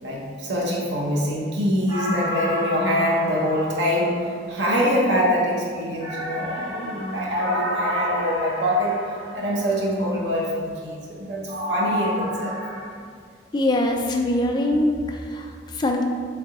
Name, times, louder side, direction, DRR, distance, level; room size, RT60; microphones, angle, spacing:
voice 1, 0.0-8.9 9.3-12.6, equal, 80° right, -3 dB, 0.9 m, -24 dB
sound 1, 1.9-4.7 6.0-9.8 11.5-12.8, equal, 25° right, 1.4 m, -30 dB
voice 2, 13.5-16.0, left 1 dB, 25° left, 2 dB, 0.3 m, -23 dB
3.4 x 3.3 x 3.7 m, 2.1 s
head